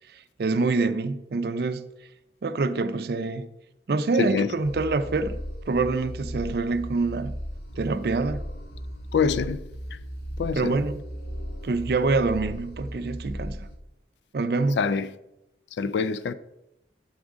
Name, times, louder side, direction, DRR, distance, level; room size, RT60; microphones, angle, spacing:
voice 1, 0.4-1.8 2.4-3.5 3.9-5.4 5.7-7.4 7.8-8.4 10.5-11.0 11.6-13.7 14.3-14.8, right 3 dB, 60° right, 0.4 m, -25 dB
voice 2, 4.2-4.5 9.1-9.6 10.4-10.7 14.8-15.1 15.8-16.3, left 5 dB, 85° left, 0.4 m, -24 dB
sound 1, 4.6-13.8, equal, 60° left, 0.8 m, -36 dB
7.3 x 3.5 x 5.0 m
head